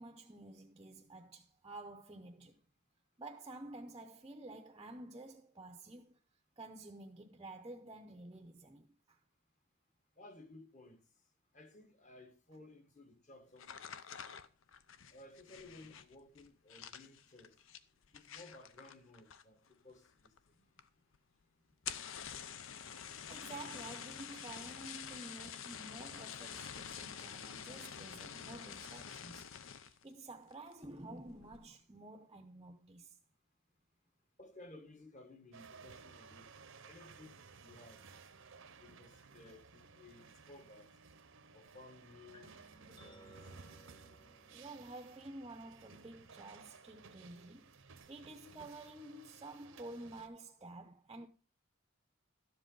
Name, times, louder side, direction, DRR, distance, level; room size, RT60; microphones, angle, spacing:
voice 1, 0.0-2.6 3.2-6.2 6.6-9.2 23.3-29.5 29.8-33.1 44.5-47.7 48.1-51.3, right 2 dB, 20° right, 0.7 m, -51 dB
voice 2, 10.2-11.0 11.5-13.9 15.1-17.6 18.1-20.7 34.4-38.0 38.7-40.9 41.5-42.5 42.9-43.3, left 2 dB, 35° left, 1.3 m, -57 dB
sound 1, 13.6-19.7 20.0-20.5 20.8-20.9 21.1-21.2 21.7-30.0 30.5-30.8 31.3-31.6, left 8 dB, 65° left, 0.6 m, -48 dB
sound 2, 35.5-50.3, right 5 dB, 65° right, 0.8 m, -57 dB
sound 3, 42.3-48.0, right 1 dB, 20° left, 1.0 m, -64 dB
12.0 x 7.6 x 3.8 m
head